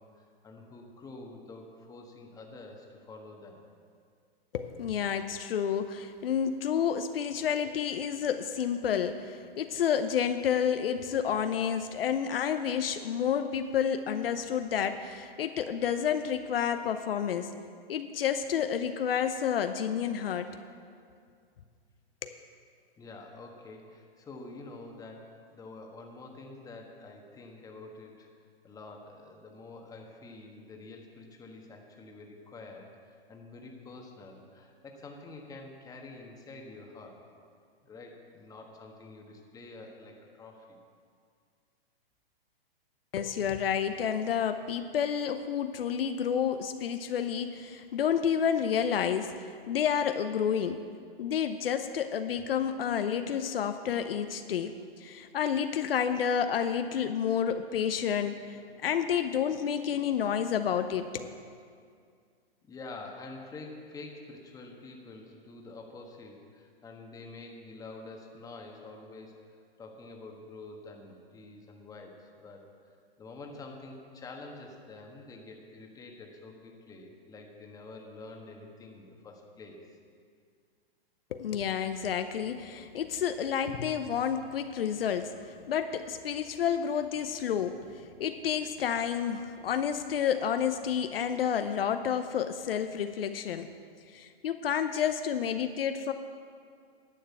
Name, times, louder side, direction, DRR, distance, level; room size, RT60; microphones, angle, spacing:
voice 1, 0.0-3.6 23.0-28.3 28.6-37.2 37.8-40.8 62.6-72.7 73.2-79.9, left 3 dB, 10° left, 2 dB, 1.3 m, -47 dB
voice 2, 4.5-17.5 17.9-20.5 22.2-22.4 43.1-50.8 51.2-61.4 81.3-85.3 85.7-87.8 88.2-93.7 94.1-96.1, left 8 dB, 70° left, 9 dB, 0.8 m, -30 dB
10.5 x 6.6 x 8.4 m, 2.2 s
hypercardioid pair, 135°, 30 cm